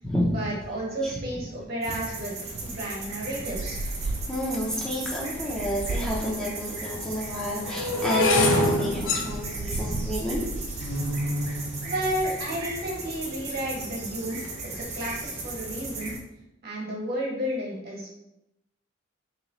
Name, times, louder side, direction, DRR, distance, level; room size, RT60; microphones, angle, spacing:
voice 1, 0.3-2.3 2.6-3.8 11.8-16.1 16.6-18.1, right 1 dB, 50° right, -3 dB, 1.2 m, -32 dB
sound 1, 1.8-16.2, right 3 dB, 35° right, 0.7 m, -37 dB
Wind, 2.5-12.3, right 2 dB, 70° right, 0.3 m, -37 dB
voice 2, 4.0-10.5, equal, 5° left, -6 dB, 0.5 m, -30 dB
sound 2, 5.9-6.0 6.8-12.9 13.6-14.0 14.2-14.6, left 2 dB, 75° left, 0.7 m, -27 dB
3.1 x 2.9 x 3.9 m, 0.88 s
head